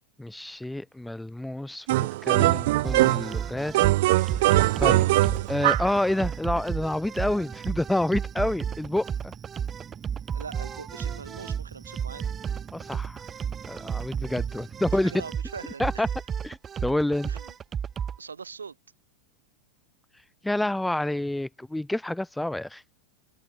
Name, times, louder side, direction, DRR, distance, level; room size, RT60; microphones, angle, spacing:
voice 1, 0.2-3.7 4.4-5.1 5.5-9.3 12.7-13.2 13.6-15.1 15.8-16.1 16.4-17.3 20.4-22.8, left 1 dB, 5° left, 3.4 m, -28 dB
sound 1, 1.9-3.4 3.7-6.0, right 18 dB, 50° right, 1.0 m, -21 dB
sound 2, 2.8-18.2, right 7 dB, 20° right, 0.8 m, -33 dB
voice 2, 10.3-12.3 15.0-16.1 17.3-17.5 18.2-18.8, right 5 dB, 75° right, 3.7 m, -41 dB
figure-of-eight pair, 90°, 0 cm